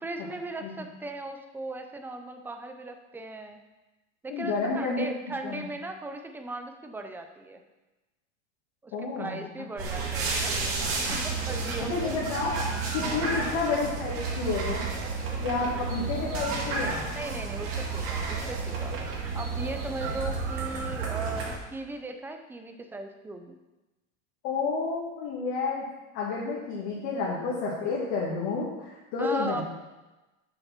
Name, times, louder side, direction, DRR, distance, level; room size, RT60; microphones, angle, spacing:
voice 1, 0.0-3.6 4.2-7.6 8.8-10.5 11.1-12.2 13.0-13.3 15.3-15.8 16.3-16.4 17.1-19.0 19.3-23.6 26.9-27.0 29.2-29.6, right 2 dB, 5° right, 6 dB, 0.4 m, -38 dB
voice 2, 4.3-5.6 8.9-9.4 11.8-12.5 12.9-14.8 15.4-17.0 24.4-25.9 26.1-29.6, left 4 dB, 50° left, -6 dB, 2.2 m, -30 dB
sound 1, 9.8-21.6, right 4 dB, 35° right, 1.9 m, -31 dB
7.0 x 6.8 x 5.8 m, 1.1 s
supercardioid pair, 145°, 37 cm